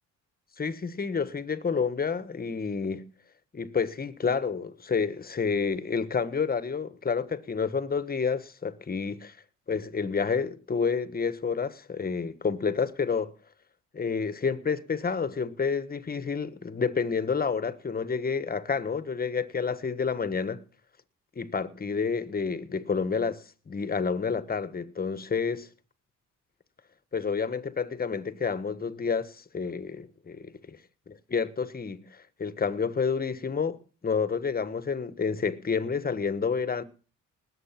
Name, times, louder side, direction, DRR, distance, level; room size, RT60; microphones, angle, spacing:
voice 1, 0.6-3.0 3.5-9.4 9.7-13.3 13.9-20.6 21.3-25.7 27.1-30.8 31.1-33.8 34.0-36.8, left 5 dB, 30° left, 1.4 m, -29 dB
19.5 x 8.0 x 5.9 m
cardioid pair, 90°, 30 cm